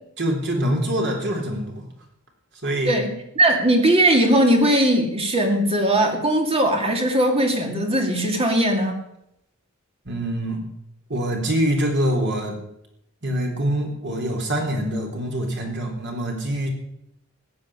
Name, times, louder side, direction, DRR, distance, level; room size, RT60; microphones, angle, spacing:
voice 1, 0.2-1.9 2.6-2.9 10.1-10.6 11.1-12.6 13.2-16.7, right 1 dB, 55° right, 2 dB, 3.8 m, -24 dB
voice 2, 3.4-9.0, right 1 dB, 30° right, 3 dB, 2.6 m, -19 dB
15.5 x 7.8 x 9.9 m, 0.80 s
head